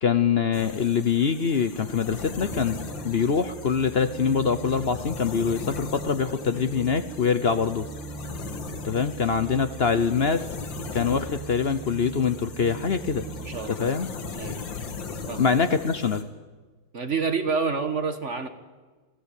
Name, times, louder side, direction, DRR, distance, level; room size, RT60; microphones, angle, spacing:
voice 1, 0.0-2.8 3.0-7.9 8.8-10.4 10.9-13.2 13.7-14.1 15.4-16.2, left 6 dB, 50° left, 11 dB, 0.7 m, -24 dB
sound 1, 0.5-16.2, left 5 dB, 80° left, 2.4 m, -39 dB
sound 2, 2.5-13.7, right 5 dB, ahead, 2.5 m, -41 dB
voice 2, 13.4-13.9 14.3-14.5 15.3-15.4 16.9-18.5, right 5 dB, 40° right, 8 dB, 1.6 m, -28 dB
26.0 x 16.0 x 8.5 m, 1.4 s
omnidirectional pair, 2.0 m